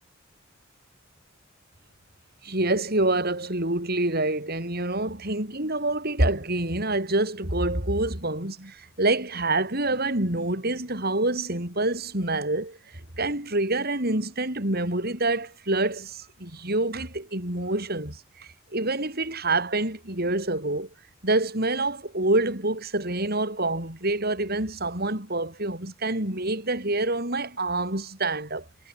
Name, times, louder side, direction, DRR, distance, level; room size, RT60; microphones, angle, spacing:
voice 1, 2.4-12.8 13.2-20.9 21.2-28.6, right 2 dB, 50° right, 6.7 m, -27 dB
head